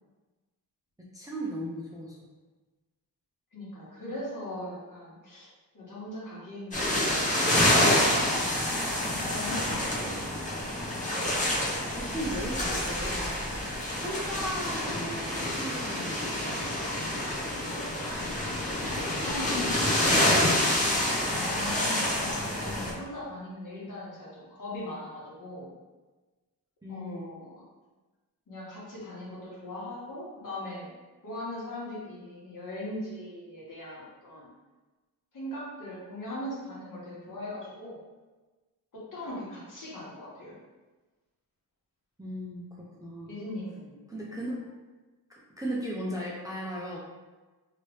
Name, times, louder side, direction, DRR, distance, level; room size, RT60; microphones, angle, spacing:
voice 1, 1.0-2.2 11.7-13.4 14.0-17.1 26.8-27.2 37.3-37.4 42.2-43.3 44.1-44.6 45.3-47.0, equal, 10° right, -5 dB, 0.4 m, -37 dB
voice 2, 3.5-5.5 5.7-10.4 18.8-25.7 26.9-27.5 28.5-30.9 31.2-34.5 35.3-38.0 38.9-40.5 43.2-44.0, left 1 dB, 55° left, -7 dB, 1.4 m, -40 dB
sound 1, 6.7-22.9, left 1 dB, 20° left, 0.7 m, -27 dB
3.0 x 2.8 x 3.1 m, 1.2 s
wide cardioid pair, 130°, 38 cm